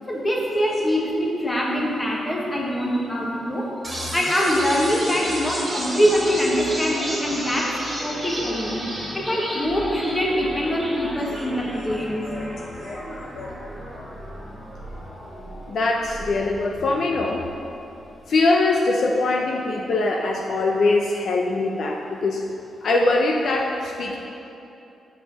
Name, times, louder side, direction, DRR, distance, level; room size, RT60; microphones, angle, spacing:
voice 1, 0.1-3.7 4.1-7.7 8.0-8.8 9.1-12.3, equal, 15° left, -2 dB, 1.1 m, -23 dB
sound 1, 3.8-17.8, right 1 dB, 10° right, 1.8 m, -33 dB
voice 2, 11.3-12.5 12.8-13.5 15.7-17.5 18.3-22.5 22.8-24.2, left 2 dB, 55° left, 1 dB, 0.5 m, -23 dB
5.9 x 5.4 x 6.4 m, 2.9 s
wide cardioid pair, 150°, 0 cm